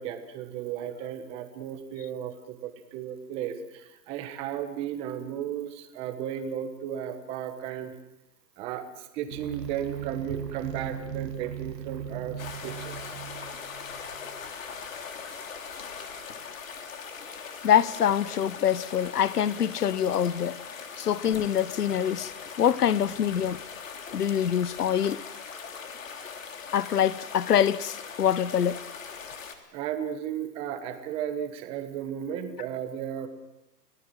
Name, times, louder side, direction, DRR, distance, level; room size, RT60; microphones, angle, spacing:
voice 1, 0.0-7.9 8.6-13.2 16.0-16.1 29.7-33.3, right 9 dB, 10° right, 1.1 m, -35 dB
sound 1, 9.3-14.5, right 9 dB, 80° right, 2.1 m, -38 dB
sound 2, 12.4-29.5, left 6 dB, 50° left, 3.4 m, -40 dB
voice 2, 17.6-20.6 21.0-22.3 22.6-23.6 24.1-25.2 26.7-28.8, left 9 dB, 70° left, 1.1 m, -25 dB
29.5 x 18.5 x 7.6 m
hypercardioid pair, 160°, 49 cm